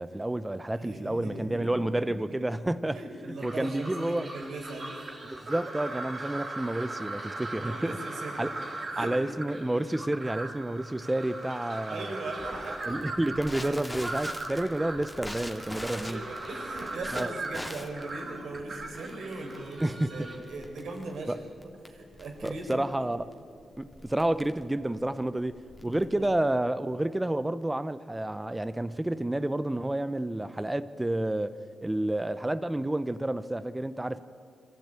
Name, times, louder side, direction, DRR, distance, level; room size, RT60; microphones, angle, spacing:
voice 1, 0.0-3.0 3.4-4.3 5.2-8.0 8.4-8.5 9.0-12.1 12.9-16.2 17.1-17.3 19.8-20.1 21.3-21.4 22.4-23.2 23.8-31.5 31.8-34.2, right 1 dB, 15° right, 14 dB, 0.7 m, -30 dB
voice 2, 0.8-1.8 2.1-2.2 2.9-5.0 7.5-8.5 8.9-9.1 11.9-12.8 13.6-13.7 15.9-21.3 21.6-23.1 25.8-26.2, right 2 dB, 75° right, 2 dB, 4.4 m, -39 dB
sound 1, 3.4-20.4, right 2 dB, 50° right, 4.4 m, -39 dB
Crackle, 12.4-26.6, left 1 dB, 10° left, 2.5 m, -44 dB
22.5 x 14.5 x 8.9 m, 2.5 s
cardioid pair, 60°, 0 cm